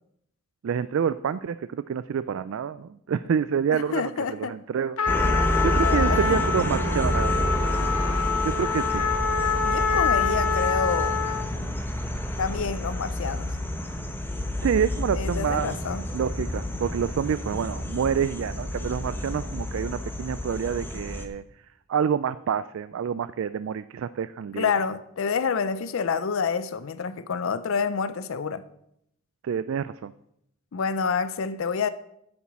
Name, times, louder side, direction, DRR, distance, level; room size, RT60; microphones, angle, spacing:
voice 1, 0.6-5.0 5.6-7.9 8.4-9.0 14.6-15.8 16.1-21.4 21.9-24.7 29.4-30.1, right 7 dB, 60° right, 0.3 m, -28 dB
voice 2, 3.7-4.6 5.8-6.4 9.6-11.2 12.4-13.5 15.1-16.0 24.6-28.6 30.7-31.9, left 5 dB, 60° left, 0.4 m, -28 dB
Trumpet, 5.0-11.5, left 5 dB, 75° left, 0.9 m, -26 dB
sound 1, 5.1-21.3, equal, 10° left, 0.8 m, -29 dB
8.8 x 7.1 x 6.0 m
head